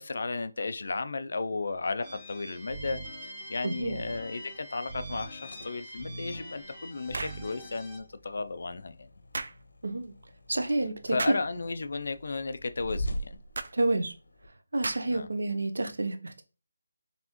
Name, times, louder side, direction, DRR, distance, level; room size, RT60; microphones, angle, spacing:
voice 1, 0.0-3.0 3.5-9.1 11.1-13.4 15.1-15.3, left 3 dB, 50° left, 0.4 m, -34 dB
sound 1, 2.0-8.0, right 1 dB, ahead, 0.8 m, -43 dB
voice 2, 3.6-4.0 9.8-10.1 10.5-11.3 13.7-14.1 14.7-16.4, right 2 dB, 80° right, 0.7 m, -29 dB
sound 2, 5.4-14.5, equal, 90° left, 0.8 m, -43 dB
sound 3, 7.1-7.4 9.3-9.6 11.2-11.5 13.5-13.7 14.8-15.2, right 3 dB, 55° right, 0.3 m, -35 dB
4.1 x 3.4 x 3.0 m
figure-of-eight pair, 175°, 0 cm